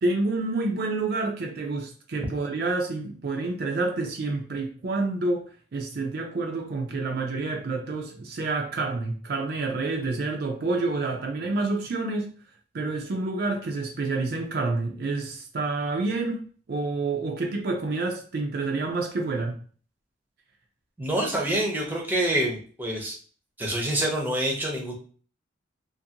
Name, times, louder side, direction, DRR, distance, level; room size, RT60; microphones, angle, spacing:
voice 1, 0.0-12.3 12.7-16.4 16.7-19.6, right 3 dB, 50° right, 0.4 m, -28 dB
voice 2, 21.0-23.2 23.6-24.9, right 1 dB, 10° right, 0.6 m, -26 dB
2.5 x 2.5 x 2.8 m
head